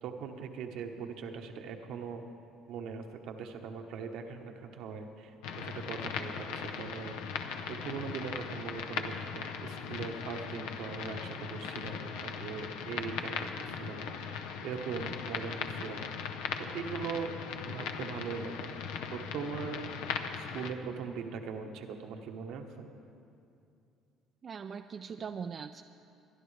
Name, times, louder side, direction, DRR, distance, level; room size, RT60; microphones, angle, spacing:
voice 1, 0.0-2.2 2.7-16.3 16.6-17.3 17.7-18.7 19.1-19.9 20.4-22.9, right 6 dB, 70° right, 4 dB, 1.1 m, -41 dB
sound 1, 5.4-20.7, left 6 dB, 85° left, 0.7 m, -39 dB
voice 2, 24.4-25.8, right 6 dB, 45° right, 7 dB, 0.4 m, -40 dB
22.5 x 11.0 x 3.3 m, 2.5 s
supercardioid pair, 80°, 0 cm